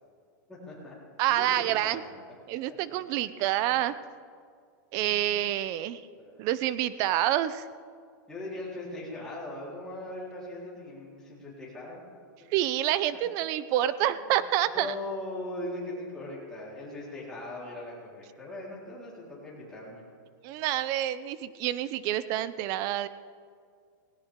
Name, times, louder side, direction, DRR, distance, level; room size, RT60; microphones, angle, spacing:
voice 1, 0.5-1.0 1.3-2.2 2.7-2.9 3.6-3.7 5.0-5.4 6.2-6.5 8.3-12.0 12.4-12.5 14.0-14.2 14.7-20.0, left 2 dB, 5° left, -7 dB, 3.8 m, -40 dB
voice 2, 1.2-2.0 2.5-3.9 4.9-6.0 6.4-7.7 12.5-14.9 20.4-23.1, right 13 dB, 30° right, 15 dB, 0.4 m, -27 dB
17.5 x 17.0 x 3.6 m, 2.2 s
supercardioid pair, 165°, 11 cm